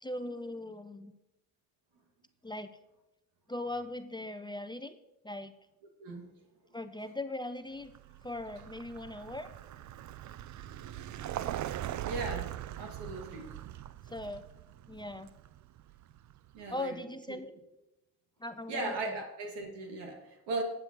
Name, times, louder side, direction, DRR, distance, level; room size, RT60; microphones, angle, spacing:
voice 1, 0.0-1.1 2.4-2.8 3.5-5.0 5.2-5.5 6.7-7.9 8.2-9.5 14.1-14.5 14.9-15.3 16.7-17.5 18.4-19.2, left 1 dB, 10° left, 10 dB, 0.6 m, -39 dB
Vehicle, 7.8-16.6, right 12 dB, 45° right, 0.5 m, -41 dB
voice 2, 12.0-12.5 12.8-13.5 16.5-17.0 17.3-17.4 18.7-20.6, right 3 dB, 80° right, 2 dB, 2.3 m, -37 dB
19.0 x 7.6 x 3.0 m, 0.94 s
supercardioid pair, 65°, 41 cm